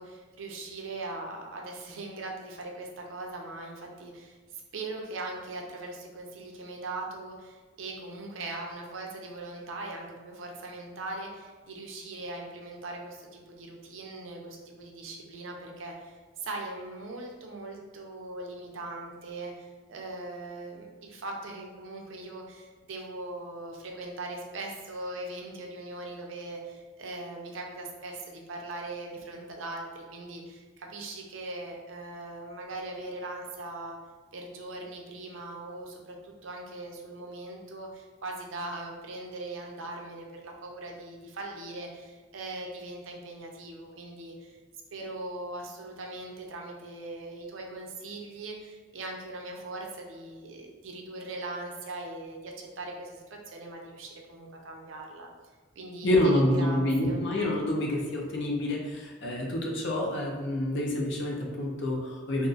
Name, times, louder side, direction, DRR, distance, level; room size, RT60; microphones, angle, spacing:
voice 1, 0.0-34.0 34.3-44.6 44.9-55.3 55.8-56.8 57.0-57.2, right 2 dB, 80° right, 1 dB, 0.6 m, -40 dB
voice 2, 56.0-62.5, left 1 dB, 65° left, -1 dB, 0.6 m, -27 dB
3.9 x 2.6 x 2.4 m, 1.4 s
head